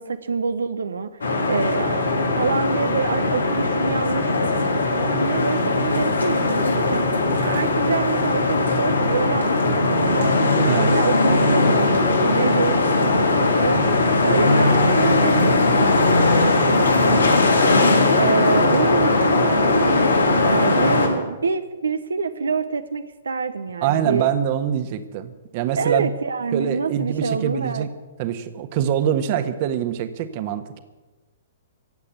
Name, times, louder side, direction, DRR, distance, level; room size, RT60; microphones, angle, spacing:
voice 1, 0.0-2.0 2.4-7.0 7.4-17.2 18.1-24.3 25.8-27.8, right 5 dB, 80° right, 9 dB, 0.9 m, -26 dB
sound 1, 1.2-21.1, left 2 dB, 85° left, 3.4 m, -19 dB
voice 2, 23.8-26.1 26.5-27.9 28.2-30.8, right 9 dB, 45° right, 10 dB, 1.4 m, -24 dB
15.5 x 8.6 x 9.5 m, 1.2 s
figure-of-eight pair, 120°, 0 cm